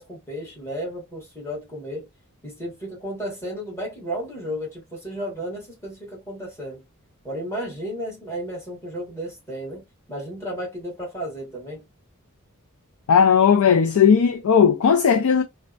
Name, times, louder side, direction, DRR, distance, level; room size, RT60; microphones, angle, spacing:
voice 1, 0.0-2.1 2.4-6.8 7.2-11.8, equal, 15° left, 1.5 m, -33 dB
voice 2, 13.1-15.4, left 7 dB, 80° left, 0.4 m, -16 dB
3.3 x 2.1 x 2.4 m
head